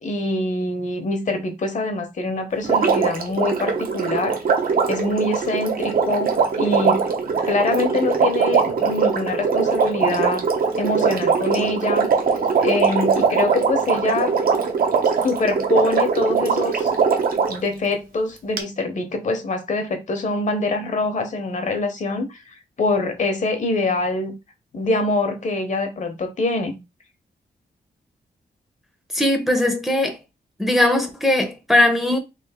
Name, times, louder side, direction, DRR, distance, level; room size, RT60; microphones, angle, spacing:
voice 1, 0.0-4.4 4.9-10.5 10.8-12.1 12.6-14.4 15.0-16.9 17.5-24.3 24.7-26.8, left 2 dB, 45° left, 0.8 m, -24 dB
Water, 2.6-17.6 18.6-18.7, right 5 dB, 60° right, 0.7 m, -21 dB
voice 2, 29.1-30.2 30.6-32.2, left 1 dB, ahead, 0.6 m, -19 dB
3.2 x 2.5 x 3.5 m
wide cardioid pair, 140°, 17 cm